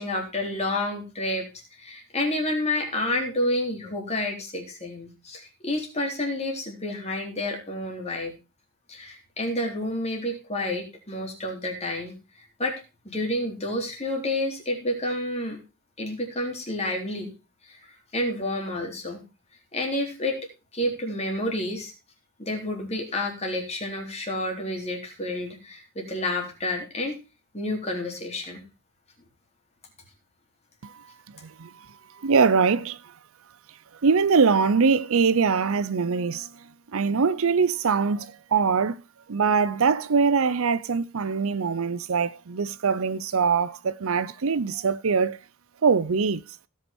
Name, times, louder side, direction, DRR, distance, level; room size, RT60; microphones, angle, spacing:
voice 1, 0.0-1.5 1.7-8.3 8.9-12.2 12.6-12.7 13.1-15.6 16.0-17.3 17.7-19.2 19.7-20.4 20.7-21.9 22.4-27.2 27.5-28.6, left 1 dB, 30° left, 3.6 m, -29 dB
voice 2, 32.2-33.0 34.0-36.5 36.9-39.0 39.3-45.4 45.8-46.4, right 5 dB, 65° right, 0.6 m, -23 dB
17.0 x 5.8 x 4.4 m
head